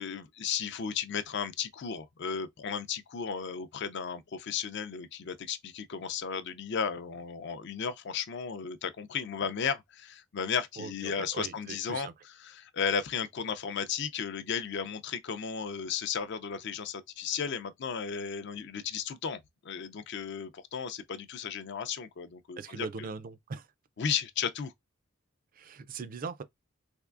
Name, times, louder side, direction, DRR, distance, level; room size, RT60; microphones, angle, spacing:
voice 1, 0.0-12.1 12.4-23.1 24.0-24.7, left 6 dB, 55° left, 0.5 m, -34 dB
voice 2, 10.8-12.1 22.6-23.7 25.5-26.4, right 4 dB, 40° right, 0.4 m, -40 dB
3.5 x 3.1 x 2.4 m
head